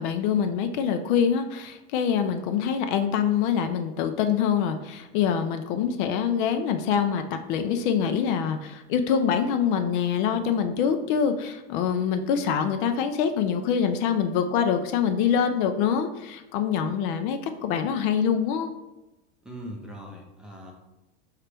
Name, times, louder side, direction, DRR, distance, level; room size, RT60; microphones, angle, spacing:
voice 1, 0.0-7.2 7.5-18.7, left 7 dB, 55° left, 7 dB, 0.4 m, -25 dB
voice 2, 19.4-20.7, equal, ahead, -2 dB, 0.6 m, -40 dB
4.7 x 3.0 x 3.3 m, 0.99 s
supercardioid pair, 140°, 31 cm